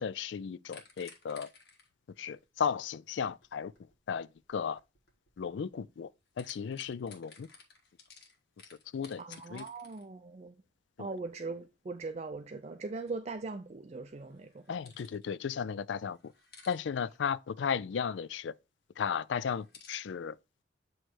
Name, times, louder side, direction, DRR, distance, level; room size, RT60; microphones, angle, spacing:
voice 1, 0.0-1.5 2.2-3.7 4.1-4.8 5.4-6.1 6.4-7.5 8.9-9.2 9.5-9.7 11.0-11.1 14.7-16.3 16.7-18.5 19.0-20.4, left 7 dB, 85° left, 0.4 m, -35 dB
sound 1, 0.7-6.0 6.3-10.0 14.3-15.3 15.6-15.7 16.1-16.8 19.3-20.0, left 5 dB, 60° left, 1.7 m, -56 dB
voice 2, 9.2-10.5 11.0-14.7, right 3 dB, 35° right, 0.4 m, -40 dB
8.0 x 3.1 x 4.4 m
head